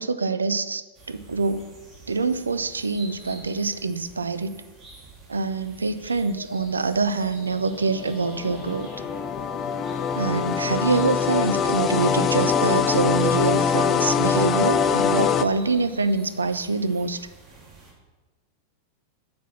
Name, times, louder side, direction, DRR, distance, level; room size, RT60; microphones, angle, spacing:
voice 1, 0.0-1.7 2.1-4.5 5.3-8.9 10.1-17.3, right 4 dB, 75° right, 13 dB, 0.5 m, -25 dB
sound 1, 0.9-17.9, right 2 dB, 25° right, 2.8 m, -48 dB
sound 2, 6.1-15.9, left 3 dB, 80° left, 0.6 m, -44 dB
sound 3, 7.5-15.4, left 7 dB, 30° left, 0.4 m, -23 dB
8.2 x 6.0 x 7.1 m, 1.2 s
figure-of-eight pair, 90°, 0 cm